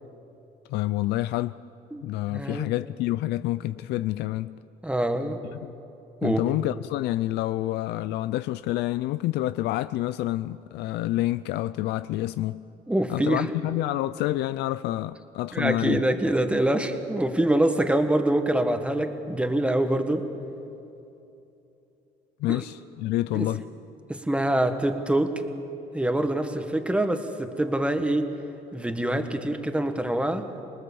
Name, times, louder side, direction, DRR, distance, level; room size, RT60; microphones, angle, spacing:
voice 1, 0.7-1.5 2.0-4.6 5.5-5.7 6.2-12.6 13.1-16.0 22.4-23.6, left 15 dB, 80° left, 0.4 m, -28 dB
voice 2, 2.3-2.7 4.8-5.4 6.2-6.4 12.9-13.5 15.5-20.3 22.5-22.6 23.3-23.5 24.1-25.4 25.9-28.3 28.7-30.5, right 1 dB, 5° right, 1.6 m, -25 dB
27.0 x 19.5 x 7.1 m
cardioid pair, 110°, 17 cm